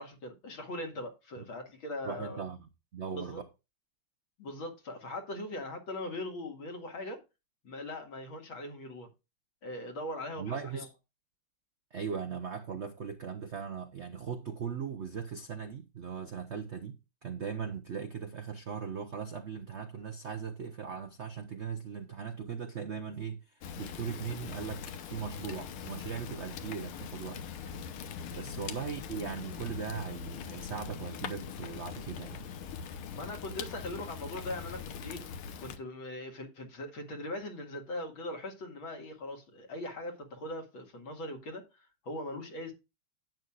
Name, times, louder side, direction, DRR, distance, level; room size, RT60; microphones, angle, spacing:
voice 1, 0.0-2.4 3.1-3.4 4.4-7.2 7.6-9.1 9.6-10.9 28.3-28.5 32.9-35.2 35.6-42.7, left 1 dB, 70° left, 2.8 m, -40 dB
voice 2, 2.0-3.5 10.4-10.9 11.9-27.4 28.3-32.5, right 6 dB, 70° right, 0.6 m, -39 dB
Fire, 23.6-35.8, left 7 dB, 90° left, 1.9 m, -42 dB
10.5 x 8.9 x 2.4 m
omnidirectional pair, 2.3 m